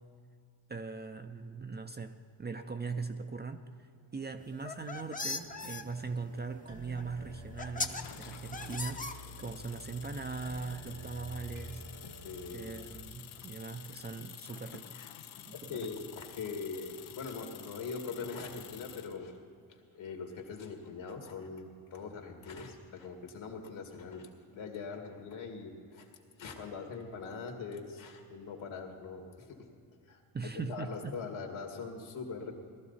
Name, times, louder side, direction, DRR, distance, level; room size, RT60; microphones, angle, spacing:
voice 1, 0.7-3.6 4.1-11.9 12.5-15.0 15.5-15.9 30.3-31.2, right 4 dB, 20° right, 7 dB, 0.5 m, -40 dB
sound 1, 4.5-5.8 7.0-7.1 7.6-8.0 8.5-9.6, left 3 dB, 15° left, 0.7 m, -37 dB
sound 2, 4.5-13.0, right 1 dB, 80° right, 1.5 m, -50 dB
sound 3, 7.9-19.2, left 11 dB, 85° left, 0.8 m, -50 dB
voice 2, 12.2-12.7 14.9-15.1 15.5-19.3 19.9-26.1 26.4-29.5 30.1-30.2 30.7-32.5, left 4 dB, 70° left, 3 dB, 2.2 m, -42 dB
17.5 x 12.5 x 4.1 m, 2.3 s
cardioid pair, 85°, 49 cm